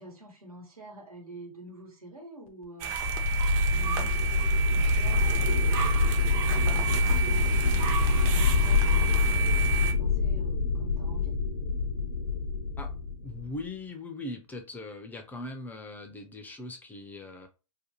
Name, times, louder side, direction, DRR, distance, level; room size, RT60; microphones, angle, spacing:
voice 1, 0.0-3.2 3.7-4.3 4.7-11.4, right 1 dB, 90° right, 0 dB, 1.3 m, -47 dB
sound 1, 2.8-9.9, right 6 dB, 40° right, 0.6 m, -31 dB
sound 2, 3.0-13.6, left 3 dB, 80° left, 0.5 m, -26 dB
voice 2, 13.2-17.5, left 2 dB, 10° left, 6 dB, 0.3 m, -40 dB
2.5 x 2.2 x 2.9 m, 0.30 s
hypercardioid pair, 115°, 18 cm